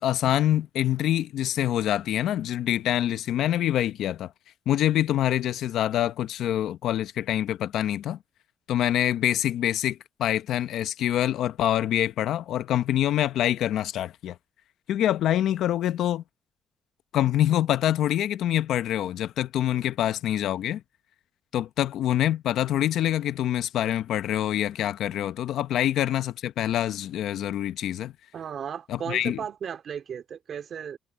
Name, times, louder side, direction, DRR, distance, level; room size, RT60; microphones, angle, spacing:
voice 1, 0.0-4.3 4.7-8.2 8.7-14.4 14.9-16.2 17.1-20.8 21.5-28.1 28.9-29.4, left 12 dB, 80° left, 0.8 m, -25 dB
voice 2, 28.3-31.0, right 8 dB, 60° right, 3.6 m, -35 dB
cardioid pair, 90°, 0 cm